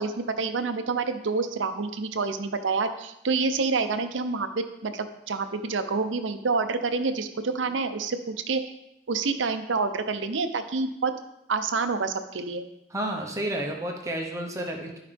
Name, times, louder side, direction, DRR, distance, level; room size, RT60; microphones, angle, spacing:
voice 1, 0.0-8.6 9.1-11.1 11.5-12.6, right 4 dB, 90° right, 9 dB, 0.7 m, -28 dB
voice 2, 12.9-15.0, right 1 dB, 15° right, 1 dB, 1.0 m, -31 dB
12.0 x 4.9 x 3.5 m, 0.85 s
head